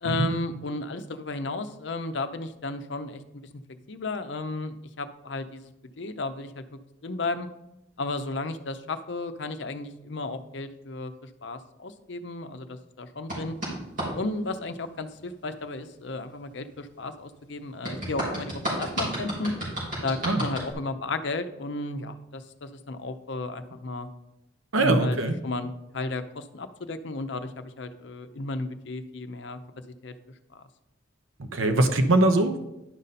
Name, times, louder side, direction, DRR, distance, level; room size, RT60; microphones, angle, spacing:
voice 1, 0.0-3.5 3.9-5.7 6.0-6.6 7.0-7.5 8.0-11.1 11.4-13.6 14.1-19.5 20.0-24.1 24.8-25.2 25.4-27.5 27.8-29.6 30.0-30.1 30.5-30.6, left 2 dB, 60° left, 9 dB, 0.6 m, -33 dB
sound 1, 13.3-14.1 17.8-20.7, equal, 40° right, 3.6 m, -31 dB
voice 2, 24.7-25.3 31.5-32.6, right 2 dB, 80° right, 6 dB, 0.8 m, -22 dB
11.0 x 5.3 x 4.1 m, 0.89 s
head